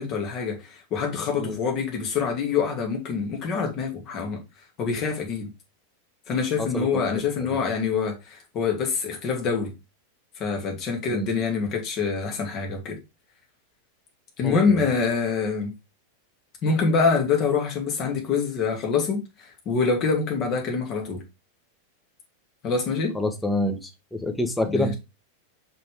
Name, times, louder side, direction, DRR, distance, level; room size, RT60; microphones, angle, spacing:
voice 1, 0.0-4.4 4.8-5.5 6.3-9.7 10.4-13.0 14.4-15.7 16.6-21.2 22.6-23.1 24.7-24.9, left 5 dB, 35° left, 2.3 m, -25 dB
voice 2, 6.6-7.0 7.4-7.6 11.1-11.3 14.4-14.9 23.1-24.9, left 1 dB, 5° left, 1.1 m, -27 dB
5.7 x 5.2 x 3.5 m
figure-of-eight pair, 90°, 0 cm